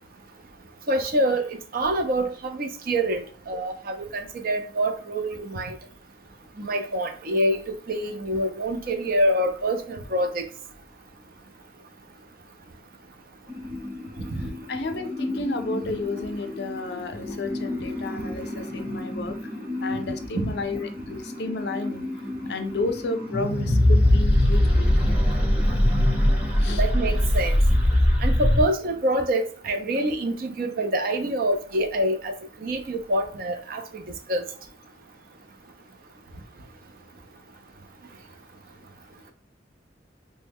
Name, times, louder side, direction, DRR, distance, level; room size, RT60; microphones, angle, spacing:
voice 1, 0.9-5.7 6.6-7.6 7.9-10.5 20.4-20.5 26.8-27.6 28.2-32.3 32.6-33.8 34.3-34.4, right 1 dB, 50° right, 0.5 m, -26 dB
sound 1, 13.5-28.6, left 1 dB, 10° right, 0.7 m, -24 dB
voice 2, 14.7-19.4 19.8-22.1 22.5-25.2 26.6-26.8, left 3 dB, 65° left, 0.5 m, -32 dB
3.1 x 2.1 x 3.4 m
head